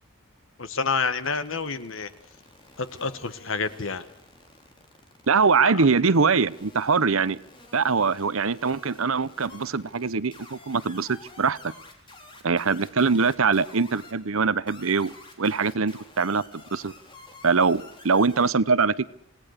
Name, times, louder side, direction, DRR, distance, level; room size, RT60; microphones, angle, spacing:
voice 1, 0.6-2.1 2.8-4.0, left 4 dB, 70° left, 11 dB, 1.6 m, -28 dB
sound 1, 1.2-14.1 14.7-18.5, left 2 dB, 25° left, 4.0 m, -49 dB
voice 2, 5.3-7.4 7.7-11.7 12.4-16.9 17.4-19.1, right 4 dB, 75° right, 17 dB, 0.9 m, -23 dB
28.0 x 18.0 x 6.7 m, 0.65 s
head